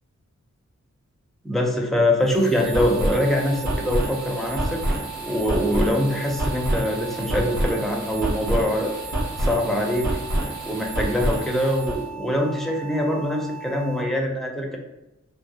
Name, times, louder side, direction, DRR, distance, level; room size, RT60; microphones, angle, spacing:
voice 1, 1.4-4.8 5.2-9.0 9.4-10.1 10.7-14.8, left 1 dB, ahead, 0 dB, 0.4 m, -23 dB
sound 1, 2.2-12.0, right 1 dB, 70° right, 0.8 m, -28 dB
sound 2, 2.6-14.0, right 9 dB, 70° left, 0.5 m, -39 dB
2.3 x 2.0 x 2.7 m, 0.95 s
wide cardioid pair, 65°, 29 cm